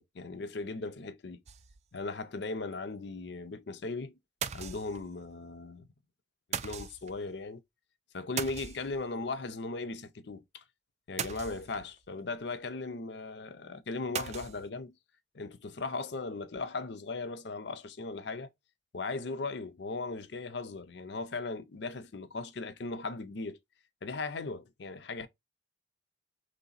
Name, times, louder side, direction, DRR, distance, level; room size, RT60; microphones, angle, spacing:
voice 1, 0.0-1.4 1.9-4.2 4.5-5.9 6.6-7.6 8.1-10.6 11.1-15.0 15.3-18.5 18.9-23.6 24.0-25.3, left 3 dB, 65° left, 0.6 m, -38 dB
sound 1, 1.5-2.0 2.4-2.5 2.7-2.8 4.4-5.3 6.5-7.2 8.4-9.2 11.2-12.0 14.1-14.7, right 7 dB, 35° right, 0.4 m, -39 dB
4.0 x 3.3 x 4.0 m
head